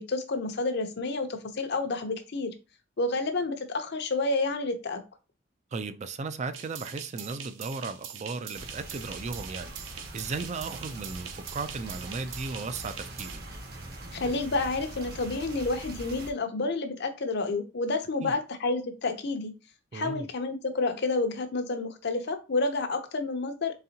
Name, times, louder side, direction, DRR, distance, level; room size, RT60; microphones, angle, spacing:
voice 1, 0.0-2.5 3.0-5.0 14.1-19.5 19.9-23.7, left 3 dB, 60° left, 0.7 m, -29 dB
voice 2, 5.7-13.4 18.2-18.3 19.9-20.3, right 4 dB, 35° right, 0.4 m, -36 dB
sound 1, 6.5-13.4, right 8 dB, 85° right, 0.6 m, -43 dB
sound 2, 8.6-16.3, right 1 dB, 55° right, 1.1 m, -42 dB
4.0 x 3.6 x 2.8 m
head